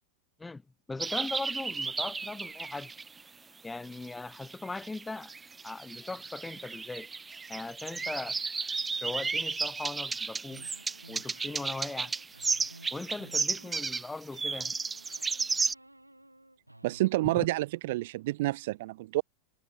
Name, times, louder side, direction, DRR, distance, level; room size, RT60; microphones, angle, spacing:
voice 1, 0.9-2.9 3.6-5.3 5.6-7.1 7.5-8.4 9.0-10.7 11.1-12.1 12.9-14.7 17.3-17.4, left 3 dB, 10° left, 1.5 m, -39 dB
sound 1, 1.0-3.2 3.9-15.7, right 4 dB, 15° right, 0.4 m, -34 dB
sound 2, 10.5-14.0 14.3-17.1, right 1 dB, 85° right, 3.7 m, -54 dB
voice 2, 16.8-19.2, right 18 dB, 50° right, 0.8 m, -29 dB
figure-of-eight pair, 90°, 0 cm